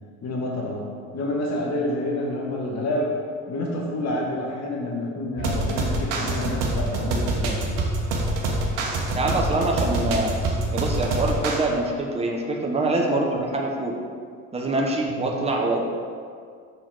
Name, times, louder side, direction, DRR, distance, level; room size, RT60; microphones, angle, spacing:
voice 1, 0.2-0.8 1.1-3.1 3.5-7.6 15.1-15.3, left 1 dB, 40° left, -2 dB, 1.2 m, -28 dB
sound 1, 5.4-11.6, right 2 dB, 65° right, 1.1 m, -25 dB
voice 2, 9.2-10.3 10.7-13.9 14.5-15.8, right 2 dB, 15° right, 0 dB, 1.0 m, -24 dB
6.6 x 3.8 x 4.7 m, 2.1 s
hypercardioid pair, 65°, 39 cm